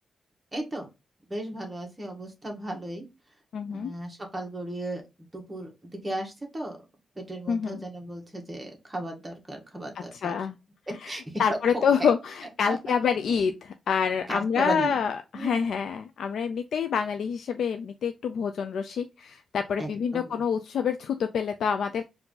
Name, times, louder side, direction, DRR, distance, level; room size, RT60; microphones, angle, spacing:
voice 1, 0.5-0.9 1.3-3.1 3.6-5.0 5.3-6.8 7.1-10.4 11.0-11.4 11.7-12.1 12.7-12.9 14.3-15.0 15.3-15.7 19.8-20.4, right 1 dB, 15° right, 1 dB, 1.5 m, -35 dB
voice 2, 3.5-3.9 7.5-7.8 10.1-10.6 11.0-11.1 11.4-22.0, left 7 dB, 75° left, 7 dB, 0.4 m, -27 dB
4.5 x 2.7 x 3.9 m, 0.25 s
wide cardioid pair, 125°, 0 cm